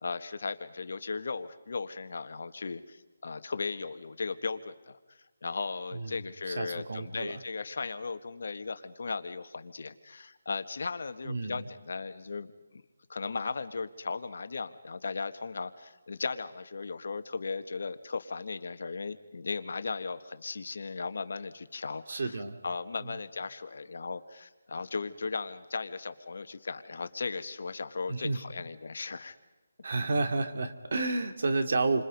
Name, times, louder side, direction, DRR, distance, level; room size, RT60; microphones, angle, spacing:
voice 1, 0.0-12.8 13.1-22.4 22.6-29.4, left 4 dB, 60° left, 10 dB, 1.6 m, -37 dB
voice 2, 6.5-7.4 11.2-11.7 22.1-22.6 23.0-23.2 28.1-28.4 29.8-32.0, right 3 dB, 55° right, 7 dB, 2.7 m, -31 dB
30.0 x 26.0 x 5.4 m, 1.1 s
hypercardioid pair, 170°, 0 cm